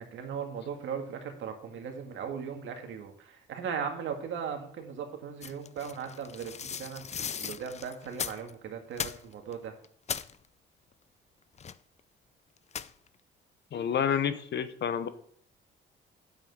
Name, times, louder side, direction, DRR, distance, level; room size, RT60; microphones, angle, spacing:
voice 1, 0.0-9.7, right 7 dB, 75° right, 4 dB, 1.8 m, -38 dB
sound 1, 5.4-8.5 8.9-9.5 9.8-10.4 11.6-12.0 12.7-13.1, left 7 dB, 35° left, 0.5 m, -38 dB
voice 2, 13.7-15.1, left 8 dB, 60° left, 12 dB, 1.0 m, -29 dB
9.0 x 7.5 x 3.9 m, 0.62 s
cardioid pair, 90°, 20 cm